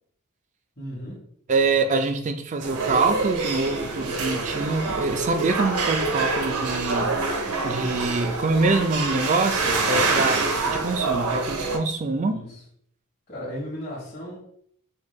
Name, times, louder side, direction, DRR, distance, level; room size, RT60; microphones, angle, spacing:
voice 1, 0.8-1.3 12.3-12.6 13.3-14.4, equal, 35° left, -10 dB, 1.2 m, -35 dB
voice 2, 1.5-7.1 7.6-12.4, right 3 dB, 35° right, 7 dB, 0.4 m, -25 dB
sound 1, 2.6-11.8, right 3 dB, 80° right, 0.6 m, -26 dB
5.0 x 2.2 x 3.2 m, 0.67 s
head